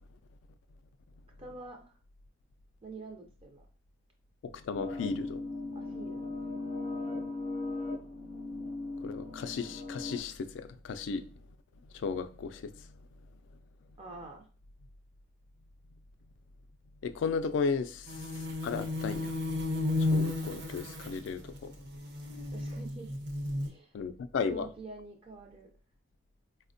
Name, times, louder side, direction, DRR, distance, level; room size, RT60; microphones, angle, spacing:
voice 1, 1.4-2.0 2.8-3.6 5.7-6.3 14.0-14.5 22.5-23.1 23.6-24.0 24.5-25.7, right 3 dB, 30° right, 0.4 m, -46 dB
voice 2, 4.6-5.4 9.0-11.3 11.9-12.7 17.0-18.2 18.6-19.3 20.0-21.7 23.9-24.7, left 5 dB, 90° left, 0.3 m, -34 dB
sound 1, 4.7-10.2, left 2 dB, 35° left, 0.5 m, -38 dB
sound 2, 18.1-23.7, left 2 dB, 65° right, 0.7 m, -33 dB
4.1 x 2.1 x 2.5 m
head